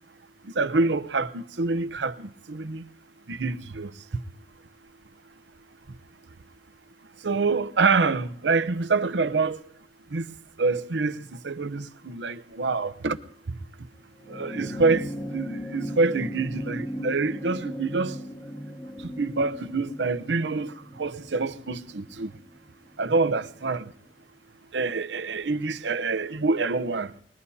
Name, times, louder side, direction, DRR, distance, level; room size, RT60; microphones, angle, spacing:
voice 1, 0.4-2.9 3.3-4.2 7.2-9.6 10.1-13.2 14.3-18.2 19.0-22.3 23.0-23.9 24.7-27.1, right 3 dB, 80° right, 0.8 m, -26 dB
sound 1, 14.2-22.9 24.1-24.2, equal, 15° left, 1.4 m, -37 dB
24.5 x 20.5 x 2.8 m
head